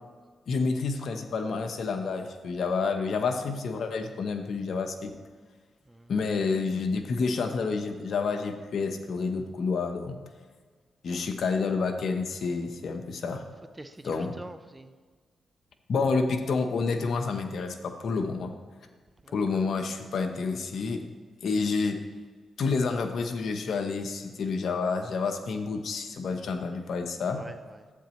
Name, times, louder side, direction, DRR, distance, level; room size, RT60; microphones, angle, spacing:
voice 1, 0.5-5.1 6.1-10.2 11.0-13.4 14.0-14.3 15.9-18.5 19.3-21.1 21.4-22.0 22.6-27.4, left 4 dB, 70° left, 6 dB, 0.9 m, -29 dB
voice 2, 13.8-14.9 19.2-19.6 27.3-27.9, right 1 dB, 20° right, 11 dB, 0.6 m, -46 dB
12.0 x 8.5 x 3.1 m, 1.5 s
cardioid pair, 60°, 0 cm